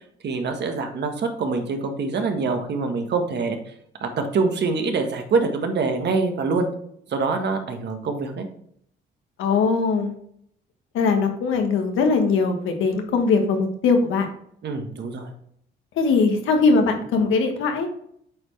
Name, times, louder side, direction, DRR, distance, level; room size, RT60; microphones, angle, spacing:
voice 1, 0.0-3.7 4.0-6.7 7.1-8.5 14.6-15.3, right 4 dB, 60° right, 5 dB, 1.4 m, -25 dB
voice 2, 9.4-10.1 10.9-14.3 15.9-17.9, left 4 dB, 85° left, 4 dB, 1.3 m, -20 dB
8.4 x 4.4 x 3.2 m, 0.68 s
cardioid pair, 90°, 20 cm